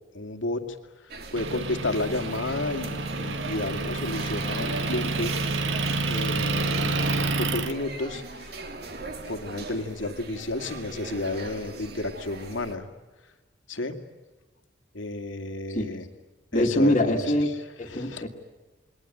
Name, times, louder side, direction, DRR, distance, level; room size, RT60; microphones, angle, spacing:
voice 1, 0.1-0.8 1.3-5.3 6.0-8.5 9.3-12.9 13.7-14.0 14.9-16.0 16.5-17.2 17.9-18.2, left 2 dB, 80° left, 6 dB, 2.4 m, -31 dB
sound 1, 1.1-12.7, right 2 dB, 55° right, 2.8 m, -39 dB
Motor vehicle (road) / Engine, 1.4-7.7, right 3 dB, 75° right, 1.7 m, -29 dB
voice 2, 16.5-17.5 17.8-18.3, left 1 dB, 35° left, -3 dB, 2.3 m, -23 dB
29.0 x 22.0 x 9.2 m, 1.2 s
head